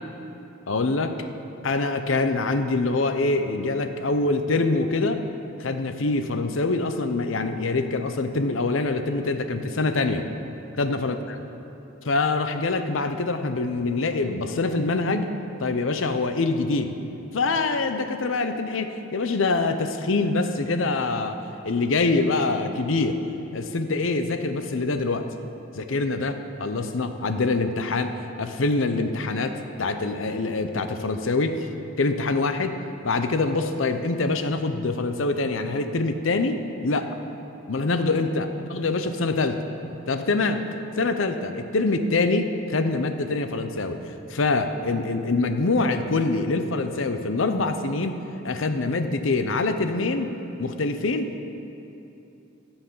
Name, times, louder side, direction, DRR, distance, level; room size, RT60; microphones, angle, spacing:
voice 1, 0.7-1.2 1.6-5.2 5.6-10.3 10.8-11.4 12.0-15.3 15.6-16.9 17.3-21.4 21.6-23.2 23.5-25.3 25.8-31.7 32.0-32.8 33.0-37.1 37.7-39.6 40.1-40.6 41.0-48.2 48.4-50.3 50.6-51.5, left 3 dB, 80° left, 8 dB, 0.7 m, -25 dB
14.5 x 7.2 x 5.5 m, 2.9 s
head